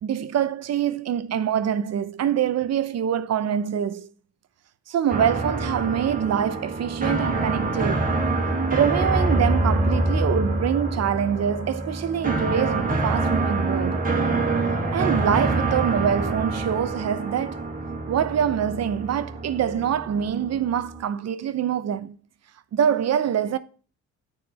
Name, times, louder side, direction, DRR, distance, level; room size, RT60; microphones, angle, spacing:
voice 1, 0.0-4.1 4.9-8.1 8.7-14.0 14.9-17.6 18.1-22.2 22.7-23.6, right 9 dB, 55° right, 0.8 m, -25 dB
sound 1, 5.1-21.0, right 2 dB, 30° right, 1.9 m, -26 dB
9.5 x 4.6 x 4.2 m
cardioid pair, 90°, 30 cm